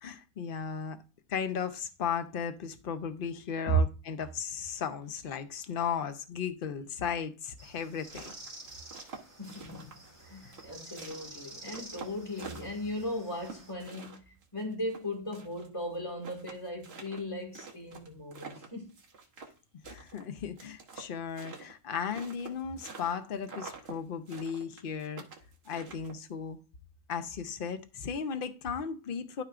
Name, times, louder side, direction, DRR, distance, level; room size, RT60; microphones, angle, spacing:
voice 1, 0.0-1.0 1.3-8.3 19.7-25.2 25.7-26.6 27.1-29.4, left 7 dB, 50° left, 0.8 m, -36 dB
sound 1, 7.6-13.7, right 2 dB, 35° right, 2.3 m, -50 dB
sound 2, 7.9-10.2 10.5-13.0 13.4-15.7 15.9-16.0 16.2-19.6 19.8-23.2 23.4-24.0 24.3-26.3, right 5 dB, 55° right, 1.4 m, -47 dB
voice 2, 9.4-18.9, right 1 dB, 25° left, 2.1 m, -37 dB
12.5 x 4.4 x 2.5 m
omnidirectional pair, 1.3 m